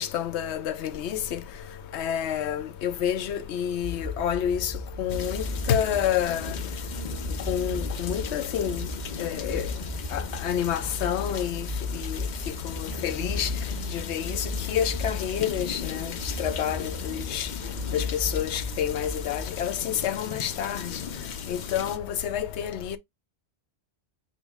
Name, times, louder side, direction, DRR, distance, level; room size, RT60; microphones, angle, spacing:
voice 1, 0.0-1.4 1.9-6.6 7.5-8.9 9.2-9.7 10.1-11.7 11.9-12.2 12.6-13.5 13.9-16.1 16.4-17.5 17.9-21.0 21.5-23.0, left 9 dB, 85° left, 0.9 m, -29 dB
sound 1, 3.8-19.8, left 2 dB, 15° right, 1.4 m, -35 dB
sound 2, 5.1-22.0, left 7 dB, 55° left, 0.6 m, -38 dB
6.1 x 2.3 x 3.5 m
omnidirectional pair, 1.1 m